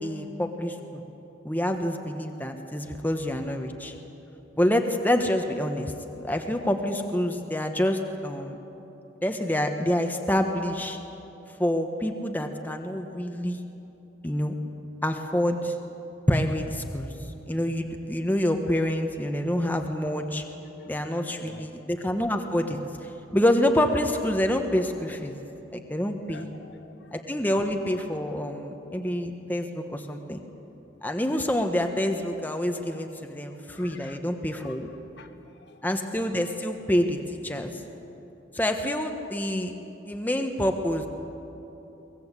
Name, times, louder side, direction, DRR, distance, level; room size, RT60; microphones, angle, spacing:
voice 1, 0.0-1.0 1.4-3.9 4.6-5.9 6.2-8.6 9.2-11.0 11.6-13.6 14.2-14.5 15.0-15.7 16.3-17.1 17.5-20.4 20.9-25.4 25.7-26.5 27.1-30.4 31.0-34.9 35.8-37.7 38.5-39.7 40.1-41.1, left 1 dB, 10° left, 4 dB, 1.1 m, -27 dB
voice 2, 21.0-21.6 26.3-27.1 32.8-32.9 33.7-34.2 34.6-35.3 35.6-35.8, left 3 dB, 60° left, 6 dB, 1.5 m, -49 dB
23.0 x 19.5 x 8.3 m, 3.0 s
head